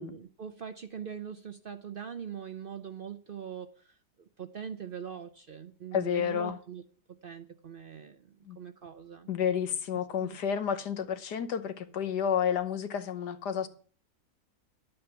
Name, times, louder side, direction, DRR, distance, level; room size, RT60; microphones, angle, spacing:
voice 1, 0.0-6.8 7.2-9.3 10.2-10.4, right 8 dB, 70° right, 0.5 m, -42 dB
voice 2, 5.9-6.6 8.5-8.6 9.3-13.7, left 8 dB, 75° left, 1.6 m, -30 dB
11.0 x 8.7 x 5.8 m
omnidirectional pair, 1.8 m